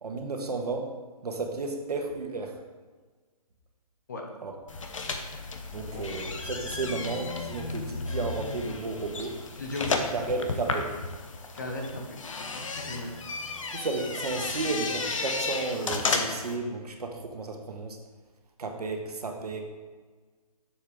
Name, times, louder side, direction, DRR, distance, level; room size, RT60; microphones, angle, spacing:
voice 1, 0.0-0.9 1.2-2.6 4.4-4.5 5.7-9.4 9.9-11.0 13.7-18.0 18.6-19.6, right 3 dB, 75° right, 3 dB, 1.5 m, -33 dB
sound 1, 4.7-16.5, left 3 dB, 55° left, 0.9 m, -33 dB
voice 2, 9.6-10.1 11.5-12.2 12.5-13.1, left 2 dB, 30° left, 1 dB, 0.9 m, -36 dB
7.2 x 5.2 x 6.3 m, 1.4 s
hypercardioid pair, 180°, 20 cm